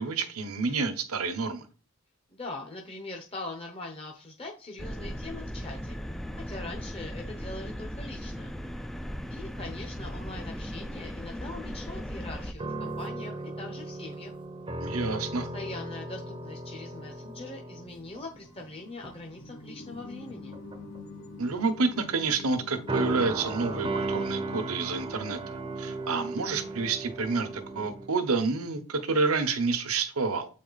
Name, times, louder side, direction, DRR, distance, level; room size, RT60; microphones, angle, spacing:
voice 1, 0.0-1.6 14.8-15.5 21.4-30.5, right 4 dB, 75° right, 1.0 m, -29 dB
voice 2, 2.3-6.0 6.5-8.5 9.3-14.3 15.4-20.6, left 2 dB, 25° left, 0.9 m, -42 dB
sound 1, 4.8-12.5, equal, ahead, 0.4 m, -37 dB
sound 2, 12.6-18.7 19.0-19.3 20.3-21.0 22.9-28.1, right 2 dB, 25° right, 0.7 m, -36 dB
sound 3, 18.0-26.7, left 2 dB, 80° left, 2.1 m, -47 dB
7.9 x 4.2 x 4.0 m
head